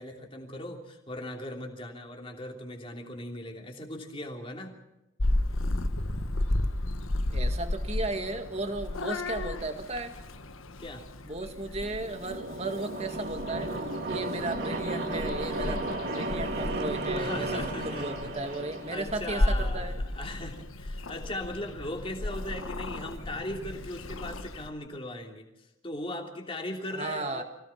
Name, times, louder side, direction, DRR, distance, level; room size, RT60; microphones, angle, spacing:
voice 1, 0.0-4.7 10.8-11.0 17.1-18.3 18.9-25.5 25.8-27.4, left 1 dB, 25° left, 1 dB, 3.0 m, -38 dB
Purr / Meow, 5.2-24.7, left 1 dB, 75° left, 1.3 m, -34 dB
voice 2, 7.3-10.1 11.2-13.8 14.1-20.0 26.9-27.4, right 2 dB, 30° right, 6 dB, 2.0 m, -35 dB
sound 1, 11.7-19.6, right 1 dB, 50° right, 2.8 m, -34 dB
25.5 x 17.5 x 5.9 m, 0.93 s
head